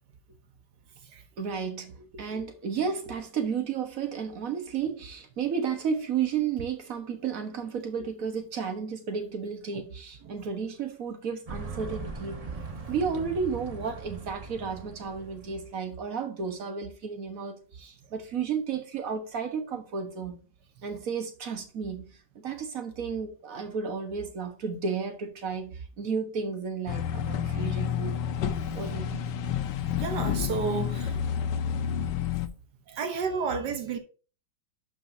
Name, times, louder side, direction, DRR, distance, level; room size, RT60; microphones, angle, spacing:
voice 1, 1.4-12.4 12.9-20.4 20.8-22.2 22.4-28.2 28.7-29.3 32.9-34.0, right 6 dB, 50° right, 1.6 m, -33 dB
sound 1, 11.5-15.8, right 4 dB, 30° right, 0.8 m, -40 dB
sound 2, 26.9-32.5, left 8 dB, 80° left, 1.4 m, -30 dB
voice 2, 30.0-31.2 33.0-34.0, right 5 dB, 75° right, 1.5 m, -31 dB
11.0 x 5.1 x 2.7 m
omnidirectional pair, 1.9 m